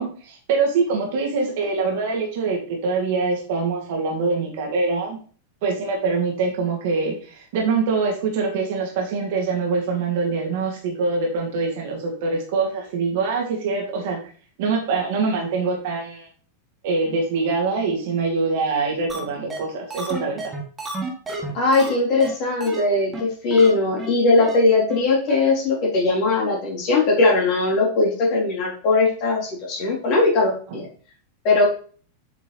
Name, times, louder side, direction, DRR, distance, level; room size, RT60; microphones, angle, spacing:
voice 1, 0.0-5.2 5.6-14.2 14.6-16.3 16.8-20.5 30.7-30.8, right 4 dB, 50° right, 0 dB, 2.2 m, -24 dB
sound 1, 19.1-19.2 19.5-19.6 19.9-21.9 22.2-22.3 22.6-22.8 23.1-23.2 23.5-23.7 24.0-24.1 24.4-24.6 24.9-25.0 25.3-25.4, right 2 dB, 15° right, 1.7 m, -31 dB
voice 2, 21.5-30.9 31.4-31.7, left 3 dB, 40° left, -3 dB, 3.4 m, -19 dB
7.5 x 5.3 x 3.2 m, 0.42 s
figure-of-eight pair, 90°, 0 cm